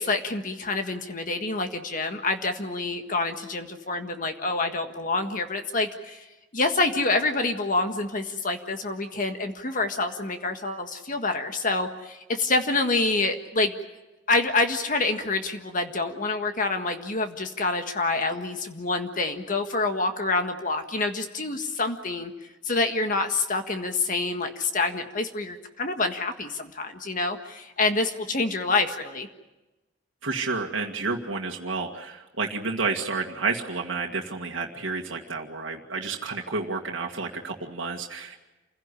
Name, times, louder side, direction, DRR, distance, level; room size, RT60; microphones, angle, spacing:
voice 1, 0.0-6.3 6.5-13.7 14.3-22.3 22.6-29.3, left 3 dB, 45° left, 6 dB, 1.6 m, -27 dB
voice 2, 30.2-38.4, right 4 dB, 80° right, 0 dB, 2.0 m, -30 dB
28.0 x 16.5 x 9.8 m, 1.1 s
head